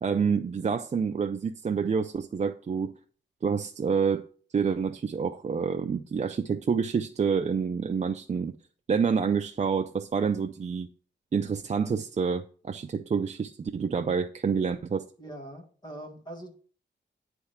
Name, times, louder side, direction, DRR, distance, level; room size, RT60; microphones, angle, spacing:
voice 1, 0.0-2.9 3.4-4.3 4.5-8.6 8.9-10.9 11.3-15.0, right 6 dB, 35° right, 0.4 m, -28 dB
voice 2, 15.2-16.5, right 1 dB, 25° left, 1.7 m, -42 dB
9.5 x 3.5 x 5.6 m
wide cardioid pair, 120°, 19 cm